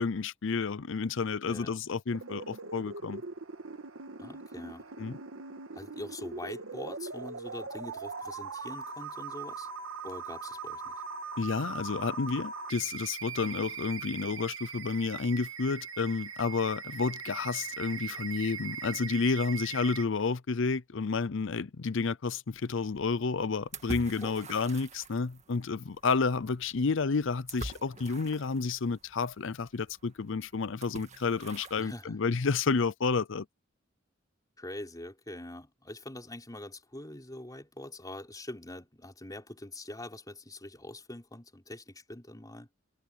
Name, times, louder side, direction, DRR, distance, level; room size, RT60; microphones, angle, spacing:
voice 1, 0.0-3.2 5.0-5.2 11.4-33.5, left 4 dB, 70° left, 0.6 m, -30 dB
voice 2, 1.4-1.8 4.2-4.9 5.7-9.7 10.0-10.9 24.2-24.4 31.7-32.2 34.6-42.7, left 1 dB, 20° left, 4.2 m, -44 dB
sound 1, 2.1-20.1, right 5 dB, 80° right, 1.8 m, -41 dB
sound 2, 22.5-32.0, right 2 dB, 35° right, 1.9 m, -47 dB
head